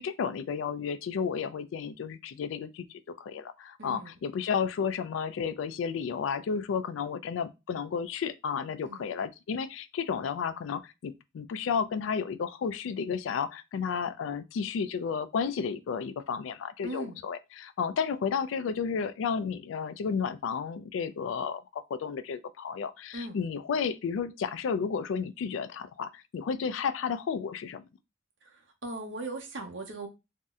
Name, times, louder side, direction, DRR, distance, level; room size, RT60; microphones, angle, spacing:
voice 1, 0.0-27.8, left 6 dB, 85° left, 0.3 m, -32 dB
voice 2, 3.8-4.2 8.8-9.1 16.8-17.2 23.1-23.4 28.4-30.1, right 2 dB, 75° right, 0.8 m, -39 dB
2.7 x 2.1 x 3.5 m
head